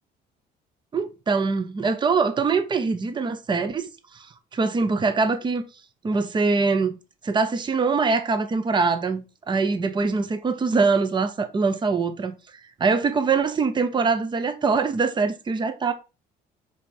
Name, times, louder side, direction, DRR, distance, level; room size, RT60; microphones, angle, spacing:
voice 1, 0.9-4.3 4.5-5.6 6.0-7.0 7.2-12.4 12.8-15.9, right 4 dB, 25° right, 0.9 m, -23 dB
5.1 x 4.9 x 4.3 m
cardioid pair, 110°, 17 cm